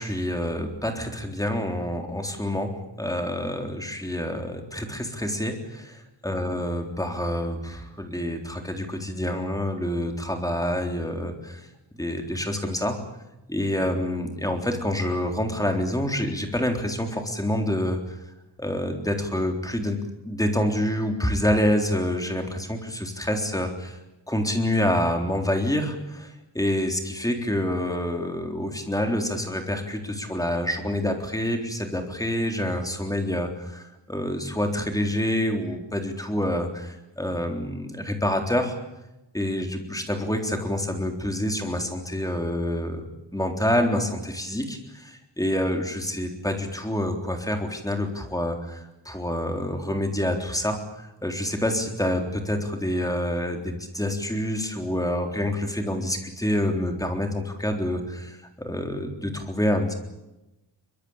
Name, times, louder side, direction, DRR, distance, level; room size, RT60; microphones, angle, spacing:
voice 1, 0.0-11.7 12.0-13.0 13.5-18.0 18.6-20.0 20.3-24.0 24.3-38.8 39.3-43.1 43.3-59.9, left 1 dB, 5° left, 4 dB, 3.7 m, -27 dB
23.5 x 22.5 x 8.8 m, 0.96 s
wide cardioid pair, 140°, 46 cm